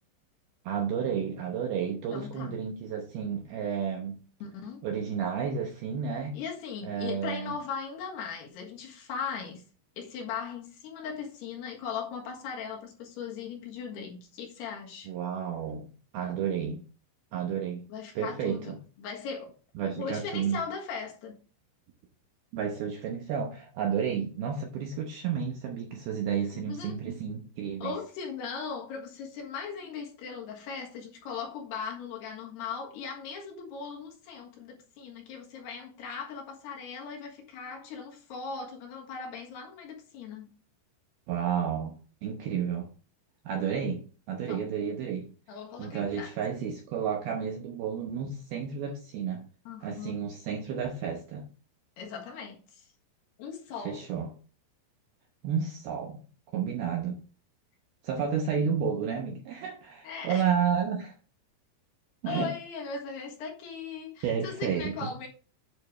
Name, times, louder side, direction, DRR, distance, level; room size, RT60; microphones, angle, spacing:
voice 1, 0.7-4.2 4.8-6.4 6.8-7.5 15.1-16.8 17.3-17.8 18.2-18.8 19.8-20.6 22.5-27.9 41.3-42.9 43.5-45.3 45.8-49.4 49.8-51.5 53.8-54.3 55.4-56.2 56.5-57.2 58.0-61.1 62.2-62.5 64.2-65.1, right 7 dB, 75° right, 2.3 m, -31 dB
voice 2, 2.1-2.6 4.4-4.9 6.3-9.6 10.0-15.1 17.9-19.5 20.0-21.4 26.5-27.0 27.8-40.5 44.4-44.7 45.5-46.3 49.6-50.1 52.0-52.9 53.4-54.0 58.2-58.3 60.0-60.5 62.3-65.3, left 6 dB, 65° left, 3.4 m, -38 dB
9.3 x 6.5 x 3.2 m
omnidirectional pair, 5.5 m